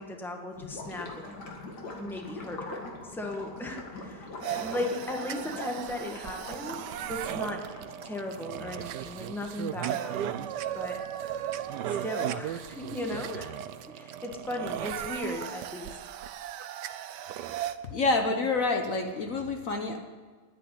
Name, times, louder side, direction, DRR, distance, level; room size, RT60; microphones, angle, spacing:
voice 1, 0.0-1.4 2.0-6.8 7.1-7.7 8.0-10.5 10.7-11.0 11.9-13.5 13.9-15.9, left 1 dB, ahead, 2 dB, 1.4 m, -37 dB
Gurgling / Liquid, 0.5-8.3, left 2 dB, 80° left, 2.5 m, -43 dB
sound 1, 4.4-17.7, right 11 dB, 85° right, 1.3 m, -36 dB
voice 2, 17.9-20.0, left 3 dB, 55° left, 4 dB, 1.4 m, -27 dB
10.0 x 9.4 x 9.9 m, 1.5 s
omnidirectional pair, 1.8 m